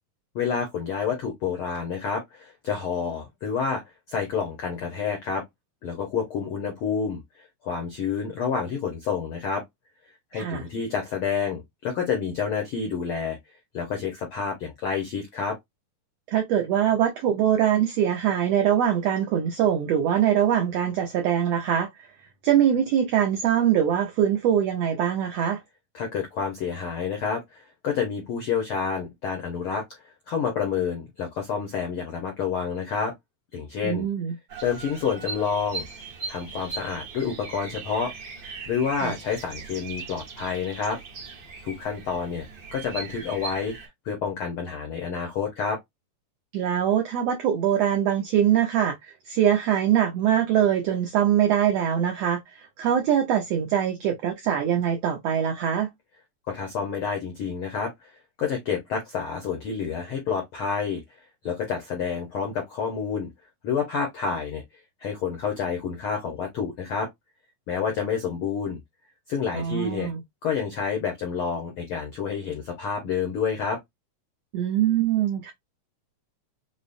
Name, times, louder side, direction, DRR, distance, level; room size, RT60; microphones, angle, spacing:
voice 1, 0.3-3.8 4.1-5.4 5.8-9.6 10.3-13.4 13.7-15.6 25.9-30.0 30.3-33.1 33.5-34.1 34.6-35.8 36.3-38.1 38.4-41.0 41.6-45.8 56.5-58.1 58.4-61.0 61.4-63.3 63.6-64.6 65.0-67.1 67.7-68.8 69.3-70.1 70.4-73.8, left 6 dB, 80° left, 1.2 m, -29 dB
voice 2, 10.3-10.6 16.3-22.1 22.4-25.6 33.8-34.3 39.0-39.2 46.5-55.9 69.5-70.2 74.5-75.5, right 9 dB, 85° right, 1.4 m, -23 dB
Bird vocalization bird call bird song, 34.5-43.9, right 4 dB, 60° right, 1.1 m, -39 dB
5.4 x 2.0 x 2.5 m
omnidirectional pair, 3.7 m